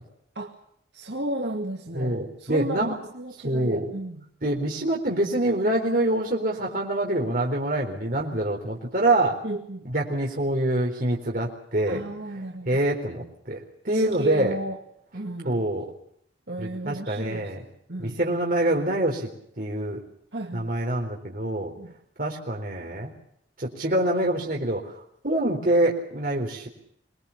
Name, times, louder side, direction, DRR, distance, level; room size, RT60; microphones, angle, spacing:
voice 1, 0.9-4.2 9.4-9.9 11.9-12.8 13.9-14.8 15.1-15.6 16.5-17.6 17.9-18.2 20.3-20.7 21.8-21.9, right 1 dB, 75° right, 1 dB, 2.1 m, -33 dB
voice 2, 1.9-2.9 3.4-3.8 4.4-9.4 9.8-12.0 12.7-14.6 15.4-15.9 16.6-17.6 18.0-19.3 19.6-20.0 20.5-21.7 22.2-23.1 23.6-24.9 25.2-26.7, right 1 dB, 55° right, -1 dB, 4.0 m, -25 dB
25.0 x 21.0 x 7.2 m, 0.69 s
head